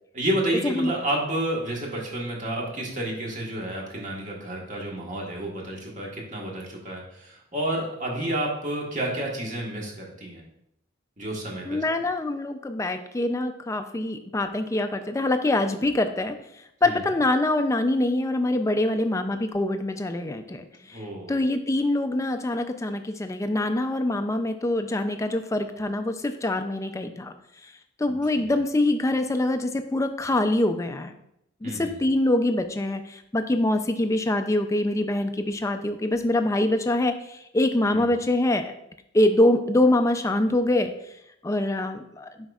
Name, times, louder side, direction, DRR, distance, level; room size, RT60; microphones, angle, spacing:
voice 1, 0.1-10.4 11.2-11.8 16.8-17.0 20.9-21.4 28.1-28.6 31.6-31.9 37.9-38.1, right 1 dB, 40° right, -2 dB, 1.5 m, -30 dB
voice 2, 11.7-16.3 16.8-21.0 21.3-27.3 28.0-31.1 31.6-38.7 39.1-40.9 41.4-42.3, left 1 dB, 15° left, 8 dB, 0.4 m, -24 dB
7.6 x 5.3 x 2.4 m, 0.78 s
head